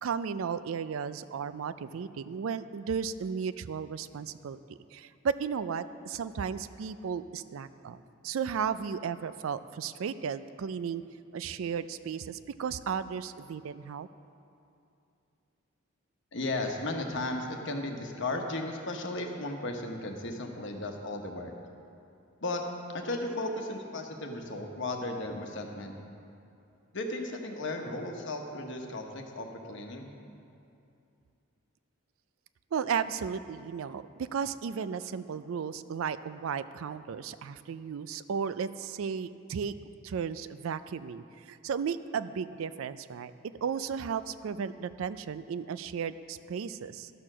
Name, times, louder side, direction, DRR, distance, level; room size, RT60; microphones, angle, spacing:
voice 1, 0.0-11.0 11.3-14.1 32.7-39.7 40.0-43.3 43.6-47.1, right 6 dB, 70° right, 14 dB, 0.4 m, -34 dB
voice 2, 16.3-21.5 22.4-22.6 22.9-26.0 26.9-30.1, left 2 dB, 60° left, 3 dB, 1.1 m, -35 dB
12.0 x 6.7 x 6.1 m, 2.6 s
head